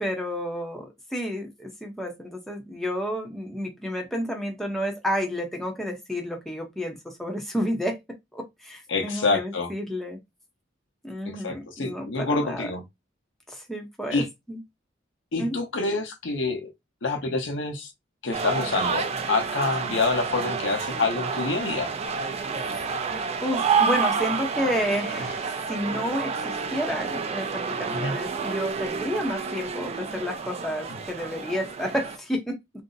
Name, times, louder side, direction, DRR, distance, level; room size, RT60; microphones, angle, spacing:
voice 1, 0.0-8.0 8.3-10.2 11.0-12.7 13.5-14.2 14.5-14.6 15.4-15.6 19.8-20.0 22.7-32.8, equal, ahead, 0.7 m, -31 dB
voice 2, 8.9-9.7 11.4-12.8 14.1-14.3 15.3-16.7 17.0-17.9 18.2-21.9 27.9-28.1, left 3 dB, 80° left, 0.8 m, -27 dB
sound 1, 18.3-32.2, right 5 dB, 35° right, 0.4 m, -29 dB
2.6 x 2.0 x 3.8 m
head